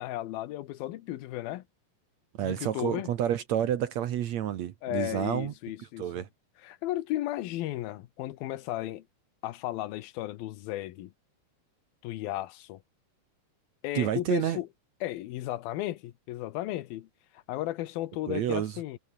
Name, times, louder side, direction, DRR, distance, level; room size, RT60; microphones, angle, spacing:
voice 1, 0.0-1.6 2.4-3.1 4.8-6.3 6.6-9.0 9.4-11.1 12.0-12.8 13.8-14.7 15.0-17.1 17.5-19.0, left 15 dB, 85° left, 2.9 m, -34 dB
voice 2, 2.4-5.5 6.0-6.3 14.0-14.6 18.3-18.8, right 10 dB, 65° right, 2.0 m, -29 dB
omnidirectional pair, 4.1 m